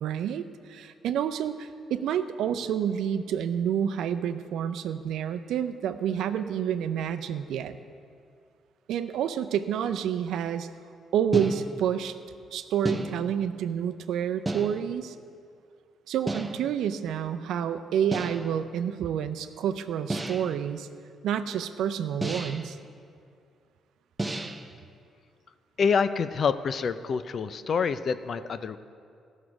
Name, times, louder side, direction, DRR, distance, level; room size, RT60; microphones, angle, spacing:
voice 1, 0.0-7.8 8.9-10.7 11.1-12.1 12.5-15.1 16.1-20.9 21.2-22.8, right 9 dB, 80° right, 9 dB, 0.5 m, -29 dB
sound 1, 11.3-12.0 12.9-13.5 14.5-15.0 16.3-16.8 18.1-18.6 20.1-20.7 22.2-22.8 24.2-24.8, right 2 dB, 15° right, 0.7 m, -32 dB
voice 2, 25.8-28.8, left 6 dB, 50° left, 13 dB, 0.5 m, -27 dB
15.0 x 6.4 x 6.0 m, 2.4 s
cardioid pair, 90°, 0 cm